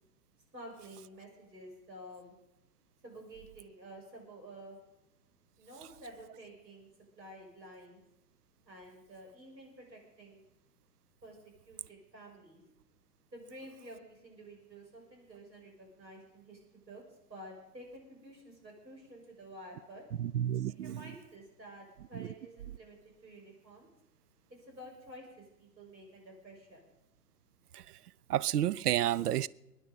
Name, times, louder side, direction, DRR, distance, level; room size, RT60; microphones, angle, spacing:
voice 1, 0.5-2.3 3.0-4.8 5.6-6.9 7.2-8.0 8.6-10.4 11.2-11.4 11.7-12.6 13.3-17.0 17.3-20.0 20.7-23.0 23.2-23.9 24.7-26.9, right 1 dB, 85° right, 6.0 m, -51 dB
voice 2, 20.2-21.1 22.1-22.3 27.7-27.8 28.3-29.5, right 12 dB, 70° right, 0.6 m, -30 dB
22.5 x 9.7 x 5.3 m
figure-of-eight pair, 120°, 49 cm